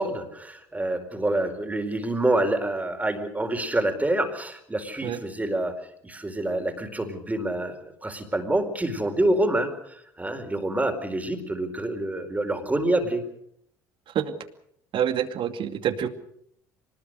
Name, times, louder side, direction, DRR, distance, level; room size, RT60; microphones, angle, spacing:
voice 1, 0.0-5.8 6.0-13.2, right 1 dB, 15° right, 6 dB, 4.6 m, -27 dB
voice 2, 14.9-16.1, right 9 dB, 55° right, 8 dB, 2.4 m, -26 dB
24.5 x 20.5 x 6.6 m, 0.70 s
hypercardioid pair, 65°, 10 cm